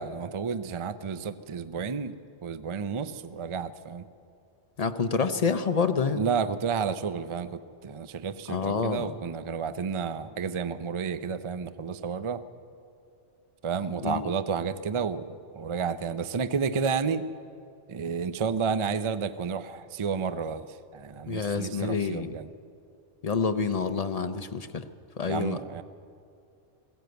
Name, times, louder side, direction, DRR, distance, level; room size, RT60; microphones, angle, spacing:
voice 1, 0.0-2.2 2.4-4.0 6.1-12.4 13.6-17.3 17.9-22.5 25.3-25.8, right 6 dB, 35° right, 12 dB, 0.5 m, -31 dB
voice 2, 4.8-6.2 8.5-9.1 14.0-14.3 21.3-22.4 23.2-24.9 25.2-25.6, left 5 dB, 40° left, 9 dB, 0.7 m, -28 dB
21.0 x 16.0 x 7.9 m, 2.4 s
omnidirectional pair, 1.2 m